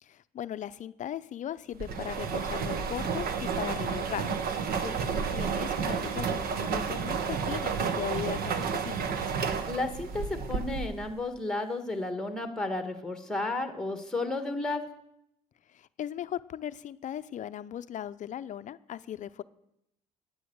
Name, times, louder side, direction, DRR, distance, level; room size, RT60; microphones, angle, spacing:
voice 1, 0.0-4.9 5.1-9.2 15.7-19.4, left 10 dB, 50° left, 14 dB, 0.5 m, -38 dB
sound 1, 1.8-11.1, right 6 dB, 65° right, 1.2 m, -31 dB
voice 2, 9.7-14.8, left 2 dB, 5° left, 7 dB, 1.7 m, -33 dB
10.0 x 8.6 x 8.0 m, 0.81 s
cardioid pair, 110°, 17 cm